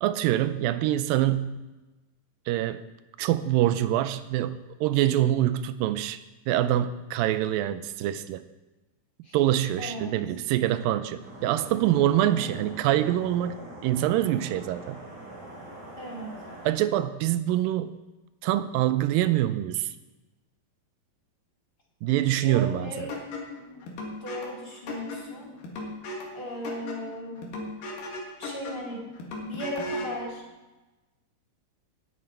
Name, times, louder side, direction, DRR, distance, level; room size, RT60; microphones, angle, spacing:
voice 1, 0.0-1.6 2.5-2.8 3.2-8.4 9.3-13.6 13.8-15.0 16.7-17.9 18.4-19.9 22.0-23.1, right 13 dB, 85° right, 12 dB, 2.3 m, -25 dB
voice 2, 9.8-10.2 12.2-12.6 16.0-16.4 22.2-23.2 24.1-25.5 26.3-27.5 28.4-29.1 29.4-30.4, equal, 30° left, -3 dB, 3.0 m, -37 dB
sound 1, 11.2-16.7, right 1 dB, 50° right, 4.6 m, -43 dB
sound 2, 23.1-30.2, left 2 dB, 70° left, 3.5 m, -37 dB
18.5 x 9.2 x 4.4 m, 1.1 s
omnidirectional pair, 4.1 m